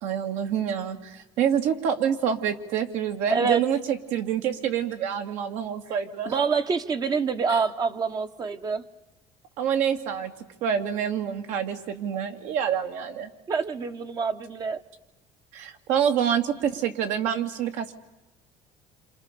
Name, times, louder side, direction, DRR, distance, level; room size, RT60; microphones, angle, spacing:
voice 1, 0.0-6.3 7.5-7.6 9.6-10.3 10.6-13.3 15.5-17.9, right 8 dB, 70° right, 6 dB, 2.5 m, -27 dB
voice 2, 3.3-3.6 6.3-8.8 13.5-14.8, right 5 dB, 30° right, 8 dB, 1.0 m, -26 dB
28.0 x 27.0 x 6.8 m, 0.98 s
cardioid pair, 150°, 13 cm